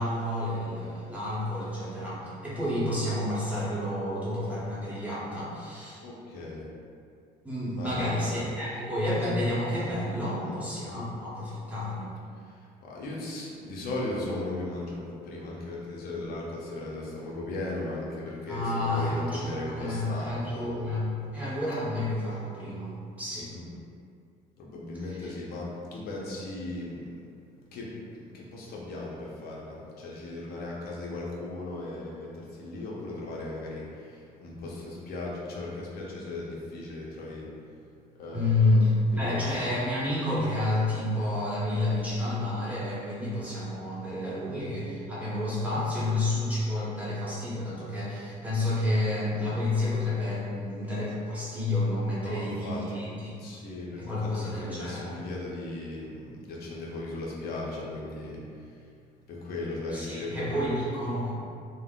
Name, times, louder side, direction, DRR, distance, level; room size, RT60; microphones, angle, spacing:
voice 1, 0.0-6.0 7.4-12.1 18.5-23.5 38.3-53.3 54.0-55.1 59.9-61.3, left 1 dB, 10° right, -10 dB, 0.9 m, -30 dB
voice 2, 6.0-6.7 7.7-8.5 10.4-10.6 12.3-20.9 23.5-23.7 24.6-27.2 27.7-37.8 38.1-38.8 39.1-39.7 52.2-53.0 53.4-58.9 59.3-60.8, left 2 dB, 65° left, -4 dB, 0.7 m, -37 dB
3.3 x 2.1 x 2.3 m, 2.4 s
cardioid pair, 110°, 17 cm